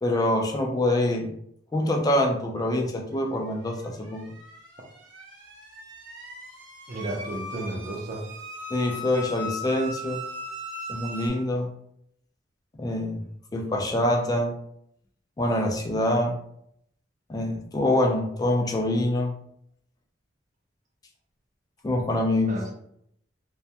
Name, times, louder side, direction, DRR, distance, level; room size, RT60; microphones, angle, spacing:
voice 1, 0.0-1.3 1.7-4.3 8.7-10.2 10.9-11.7 12.8-13.2 13.5-14.5 15.4-16.4 17.3-19.3 21.8-22.5, left 1 dB, 20° left, 2 dB, 0.4 m, -25 dB
sound 1, 3.7-11.3, equal, 80° right, 0.7 m, -39 dB
voice 2, 6.9-8.3 22.5-22.7, right 1 dB, 45° right, 1 dB, 0.5 m, -33 dB
2.2 x 2.1 x 2.7 m, 0.72 s
head